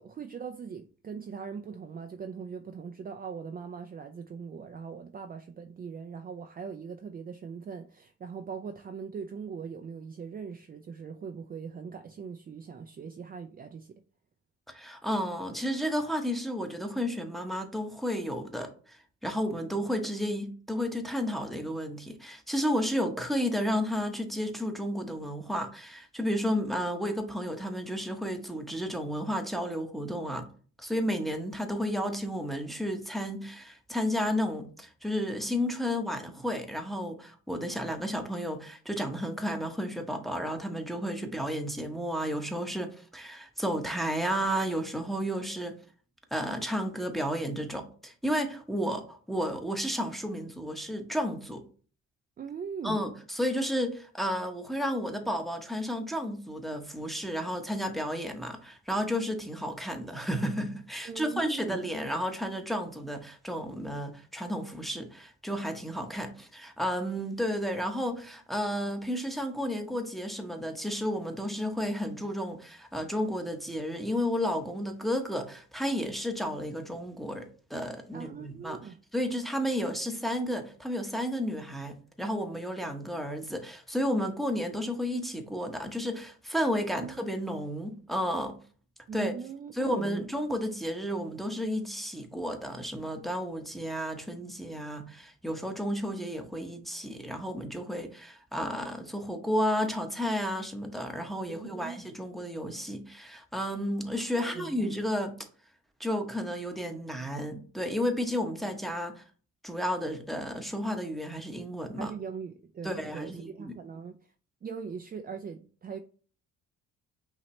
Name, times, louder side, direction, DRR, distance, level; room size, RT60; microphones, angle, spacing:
voice 1, 0.0-13.9 26.6-26.8 41.2-41.4 52.4-53.0 61.0-61.8 78.1-79.0 86.9-87.2 89.1-90.3 101.5-102.0 104.4-104.9 112.0-114.3 114.6-116.0, right 6 dB, 30° right, 0.4 m, -41 dB
voice 2, 14.7-30.5 30.8-45.8 46.3-51.6 52.8-78.8 79.1-88.6 89.1-89.3 89.7-105.3 106.0-109.2 109.6-112.1 112.8-113.8, equal, ahead, 0.9 m, -32 dB
5.7 x 2.8 x 3.1 m
cardioid pair, 90°, 30 cm